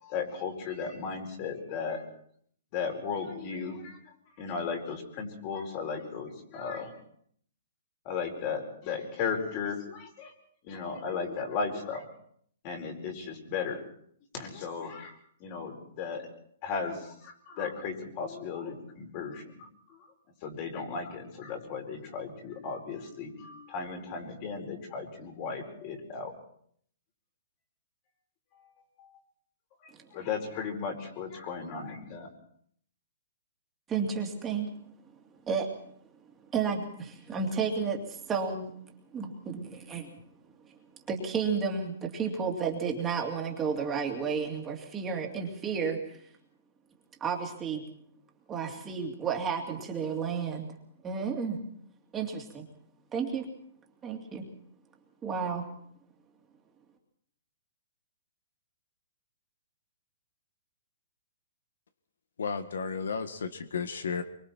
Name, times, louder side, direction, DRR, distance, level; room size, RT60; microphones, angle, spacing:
voice 1, 0.0-2.0 2.7-4.0 4.4-7.0 8.0-10.3 10.6-12.0 12.6-13.8 14.3-15.1 15.4-16.3 16.6-20.0 20.4-26.3 29.0-29.1 30.1-32.3, left 5 dB, 35° left, 3 dB, 4.7 m, -36 dB
voice 2, 33.9-34.7 35.4-35.7 36.5-38.7 39.1-40.1 41.1-46.2 47.2-47.8 48.5-50.7 51.0-51.6 52.1-52.7 53.1-53.5 54.0-54.5 55.2-55.6, right 6 dB, 15° right, 2 dB, 2.8 m, -32 dB
voice 3, 62.4-64.2, left 5 dB, 90° left, 10 dB, 1.6 m, -33 dB
24.5 x 24.0 x 4.5 m, 0.63 s
hypercardioid pair, 155°, 0 cm